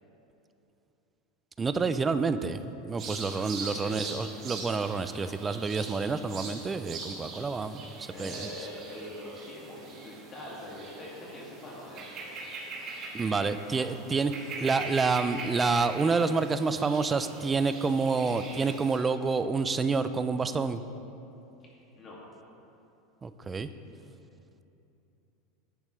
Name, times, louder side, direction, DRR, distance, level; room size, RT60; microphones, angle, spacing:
voice 1, 1.6-8.5 13.1-14.3 14.6-20.8 23.2-23.7, right 4 dB, 15° right, 11 dB, 0.3 m, -28 dB
sound 1, 3.0-19.0, right 3 dB, 35° right, 1.4 m, -42 dB
voice 2, 3.6-4.2 8.1-12.9 13.4-13.9 22.0-22.2, left 1 dB, 30° left, -5 dB, 2.2 m, -44 dB
10.5 x 8.8 x 3.2 m, 2.8 s
supercardioid pair, 140°, 0 cm